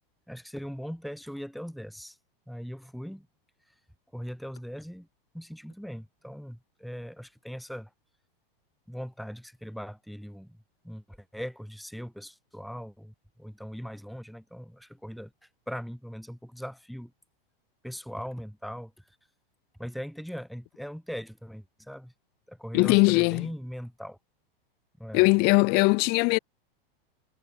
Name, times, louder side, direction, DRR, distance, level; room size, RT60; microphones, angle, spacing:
voice 1, 0.3-2.2 2.5-3.3 3.7-3.8 4.1-5.1 5.3-7.9 8.9-10.6 10.8-17.1 17.8-19.2 19.8-22.1 22.5-24.2 25.0-25.2, equal, ahead, 4.5 m, -40 dB
voice 2, 22.7-23.5 25.1-26.4, left 29 dB, 35° left, 1.0 m, -20 dB
supercardioid pair, 160°, 30 cm